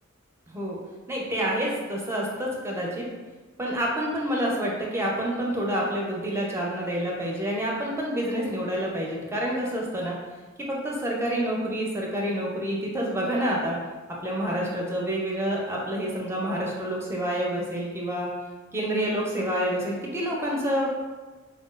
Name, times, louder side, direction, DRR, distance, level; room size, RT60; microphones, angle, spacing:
voice 1, 0.5-0.8 1.1-3.0 3.6-10.1 10.7-13.8 14.2-18.3 18.7-20.9, equal, 15° right, -3 dB, 0.5 m, -28 dB
3.8 x 2.3 x 2.3 m, 1.3 s
head